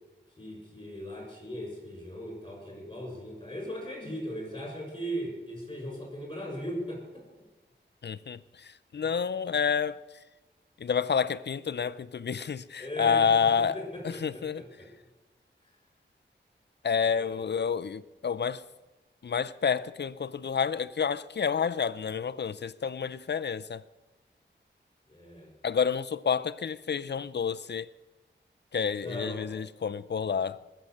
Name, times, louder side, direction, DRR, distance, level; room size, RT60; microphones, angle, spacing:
voice 1, 0.4-7.2 12.8-13.3 13.7-14.9 17.0-17.3 25.1-25.5 29.0-29.5, equal, 25° left, 6.7 m, -38 dB
voice 2, 8.0-10.2 10.8-14.6 16.8-18.6 19.2-23.8 25.6-27.9 28.7-30.6, left 6 dB, 60° left, 0.5 m, -29 dB
20.0 x 7.6 x 6.5 m
wide cardioid pair, 80°, 20 cm